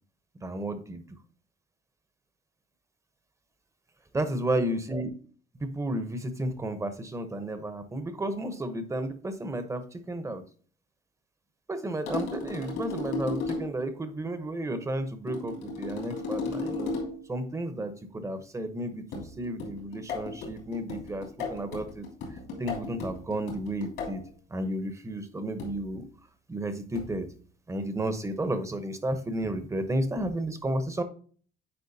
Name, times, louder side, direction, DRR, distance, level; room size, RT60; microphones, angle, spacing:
voice 1, 0.4-1.0 4.1-5.1 5.6-10.4 11.7-16.9 17.3-22.1 22.6-24.2 24.5-26.1 26.5-27.3 27.7-31.0, right 1 dB, 15° right, 10 dB, 0.9 m, -32 dB
sound 1, 12.1-13.8 15.3-17.3 19.1-24.3 25.6-25.9 26.9-27.3, left 3 dB, 85° left, 2.8 m, -35 dB
8.7 x 4.5 x 2.7 m, 0.43 s
cardioid pair, 110°, 17 cm